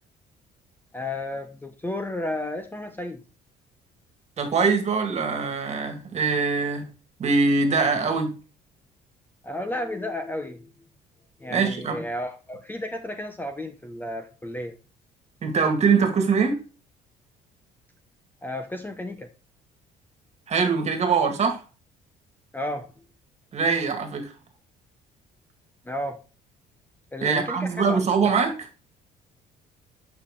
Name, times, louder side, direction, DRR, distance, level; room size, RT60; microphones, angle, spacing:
voice 1, 0.9-3.2 9.4-10.7 11.4-14.7 18.4-19.3 22.5-23.0 25.8-26.2 27.1-28.0, left 1 dB, 10° left, 0.8 m, -32 dB
voice 2, 4.4-6.9 7.2-8.3 11.5-12.0 15.4-16.6 20.5-21.6 23.5-24.3 27.2-28.7, right 5 dB, 40° right, 1.9 m, -23 dB
8.9 x 5.9 x 3.7 m
cardioid pair, 110°, 17 cm